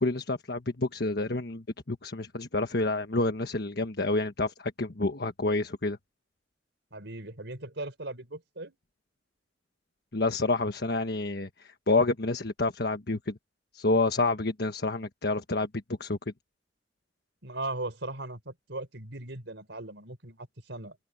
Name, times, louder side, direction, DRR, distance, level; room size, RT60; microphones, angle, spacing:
voice 1, 0.0-6.0 10.1-13.4 13.7-15.7 16.0-16.2, left 2 dB, 60° left, 1.4 m, -28 dB
voice 2, 6.9-8.8 17.4-21.0, right 2 dB, 75° right, 4.4 m, -38 dB
head